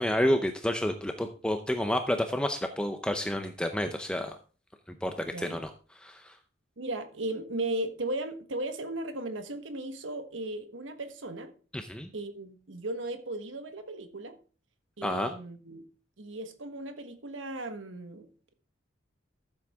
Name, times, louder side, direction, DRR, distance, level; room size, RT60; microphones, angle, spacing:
voice 1, 0.0-4.4 5.0-6.4 11.7-12.1 15.0-15.3, left 1 dB, 5° left, 6 dB, 0.6 m, -30 dB
voice 2, 6.8-11.5 12.1-14.4 15.0-15.8 16.2-18.5, right 2 dB, 80° right, 8 dB, 1.3 m, -36 dB
13.0 x 7.6 x 3.5 m, 0.37 s
head